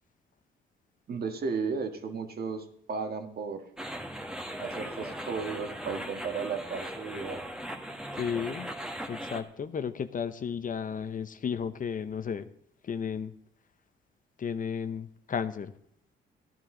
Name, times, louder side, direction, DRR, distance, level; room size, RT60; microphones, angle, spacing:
voice 1, 1.1-3.7 4.6-7.4, right 5 dB, 50° right, 6 dB, 1.7 m, -34 dB
sound 1, 3.8-9.4, equal, 5° right, 1.6 m, -38 dB
voice 2, 8.2-8.7 9.1-12.5 12.8-13.3 14.4-15.7, left 7 dB, 45° left, 12 dB, 0.8 m, -33 dB
13.5 x 11.0 x 3.8 m, 0.70 s
cardioid pair, 90°, 20 cm